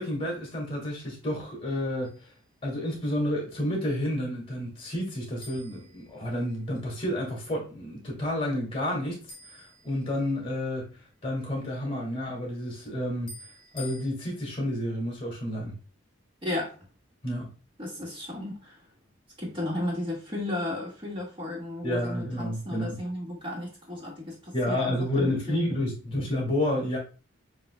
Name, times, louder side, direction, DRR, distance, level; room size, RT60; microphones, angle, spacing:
voice 1, 0.0-2.1 2.6-9.3 9.5-10.9 11.2-13.3 13.7-15.7 17.2-17.5 21.8-23.0 24.5-27.0, left 1 dB, 30° left, -1 dB, 1.7 m, -30 dB
sound 1, 2.0-2.5 5.4-6.8 9.3-10.6 13.3-14.1, left 4 dB, 45° left, 2.2 m, -48 dB
voice 2, 16.4-16.8 17.8-18.8 19.4-25.6, left 1 dB, 25° right, -3 dB, 1.8 m, -34 dB
6.8 x 3.0 x 2.2 m, 0.35 s
head